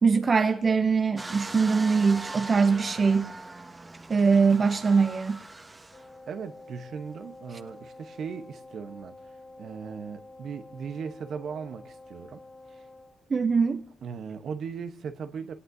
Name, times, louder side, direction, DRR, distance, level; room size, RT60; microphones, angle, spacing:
voice 1, 0.0-3.3 4.1-5.4 13.3-13.9, right 5 dB, 50° right, 0.6 m, -22 dB
sound 1, 1.2-6.2 6.8-6.9, right 2 dB, 30° right, 1.6 m, -40 dB
Wind instrument woodwind instrument, 5.9-13.2, left 2 dB, 60° left, 3.5 m, -48 dB
voice 2, 6.3-9.2 9.6-12.4 12.7-12.9 14.0-15.5, right 6 dB, 70° right, 0.9 m, -38 dB
28.0 x 18.0 x 2.7 m
supercardioid pair, 45°, 0 cm